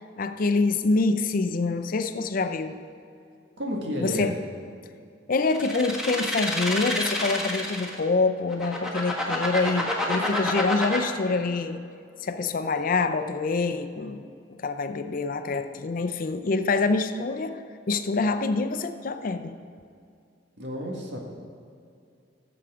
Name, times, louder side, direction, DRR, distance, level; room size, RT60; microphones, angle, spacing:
voice 1, 0.2-2.8 4.0-4.4 5.3-11.8 12.2-14.3 14.6-17.6 17.9-19.6, left 3 dB, 50° left, 10 dB, 0.5 m, -26 dB
voice 2, 3.6-4.4 20.6-21.2, equal, 90° right, 0 dB, 1.8 m, -31 dB
sound 1, 5.5-8.0 8.5-11.0, left 1 dB, 5° right, 1.4 m, -28 dB
15.0 x 7.1 x 3.7 m, 2.4 s
head